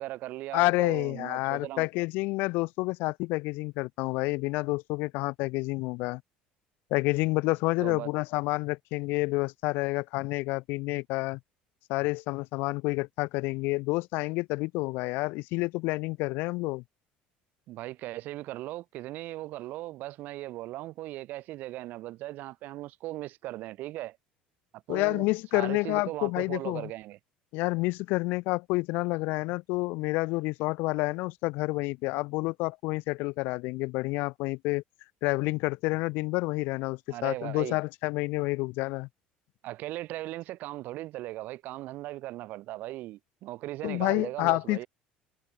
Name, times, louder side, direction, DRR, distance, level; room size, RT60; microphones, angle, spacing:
voice 1, 0.0-1.9 7.8-8.1 17.7-24.2 24.7-25.3 25.5-27.2 37.1-37.8 39.6-44.9, right 16 dB, 60° right, 4.9 m, -38 dB
voice 2, 0.5-6.2 6.9-11.4 11.9-16.8 24.9-26.9 27.5-34.8 35.2-39.1 43.8-44.8, left 24 dB, 70° left, 0.8 m, -29 dB
cardioid pair, 145°, 3 cm